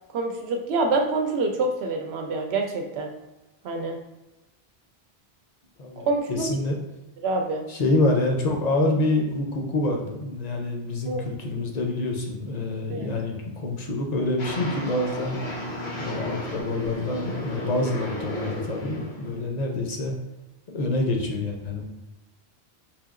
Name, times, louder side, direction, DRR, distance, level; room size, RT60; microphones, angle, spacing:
voice 1, 0.1-3.1 3.6-4.0 6.0-6.5 7.2-7.6 11.1-11.2 12.9-13.1, right 3 dB, 90° right, 3 dB, 0.8 m, -26 dB
voice 2, 5.8-6.7 7.7-15.4 16.0-20.1 20.7-21.8, left 2 dB, 50° left, 1 dB, 0.6 m, -26 dB
sound 1, 14.4-19.4, left 1 dB, 75° left, 1.1 m, -33 dB
5.1 x 2.8 x 2.4 m, 0.99 s
omnidirectional pair, 1.1 m